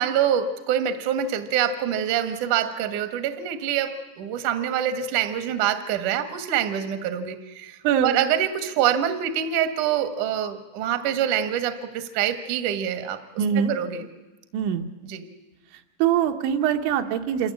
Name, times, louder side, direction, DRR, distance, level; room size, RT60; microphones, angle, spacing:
voice 1, 0.0-13.2 13.6-14.1 15.1-15.2, right 9 dB, 60° right, 8 dB, 2.2 m, -25 dB
voice 2, 7.8-8.2 13.4-13.7 14.5-14.9 16.0-17.5, right 9 dB, 80° right, 5 dB, 3.4 m, -23 dB
27.0 x 14.5 x 8.5 m, 1.1 s
omnidirectional pair, 5.3 m